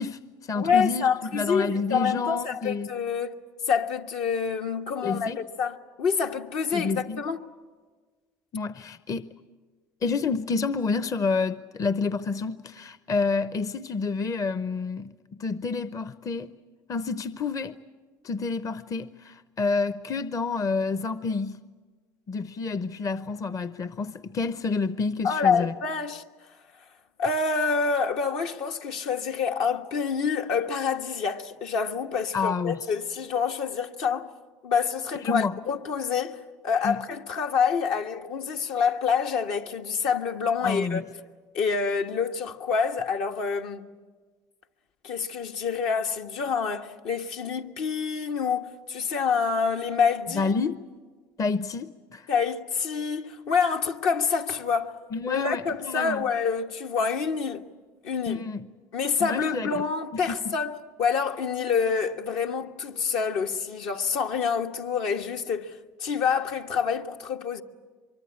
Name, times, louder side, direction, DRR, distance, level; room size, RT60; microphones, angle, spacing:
voice 1, 0.0-2.9 5.0-5.4 6.7-7.2 8.5-9.3 10.0-15.1 15.4-16.5 16.9-17.8 18.2-21.6 22.3-25.7 32.3-32.8 35.2-35.6 36.8-37.0 40.6-41.0 50.3-50.8 51.4-52.3 55.1-56.2 58.3-58.6 59.2-59.7 60.3-60.6, left 4 dB, 40° left, 0.7 m, -29 dB
voice 2, 0.5-3.3 3.7-7.4 25.2-26.2 27.2-34.3 34.6-41.0 41.5-43.9 45.0-50.5 52.3-55.0 55.3-57.7 58.0-58.4 58.9-60.7 61.0-67.6, left 6 dB, 75° left, 1.4 m, -27 dB
24.0 x 23.5 x 8.8 m
supercardioid pair, 80°, 9 cm